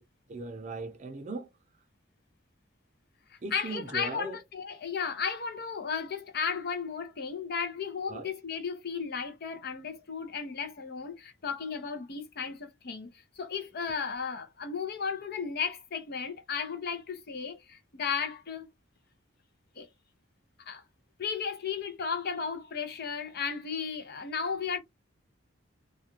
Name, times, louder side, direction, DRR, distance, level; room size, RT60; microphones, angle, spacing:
voice 1, 0.3-1.5 3.4-4.4 8.1-8.3, right 2 dB, 35° right, 0.5 m, -38 dB
voice 2, 3.3-18.7 19.8-19.9 20.6-20.8 21.2-24.8, left 6 dB, 50° left, 0.6 m, -34 dB
2.4 x 2.2 x 2.9 m
head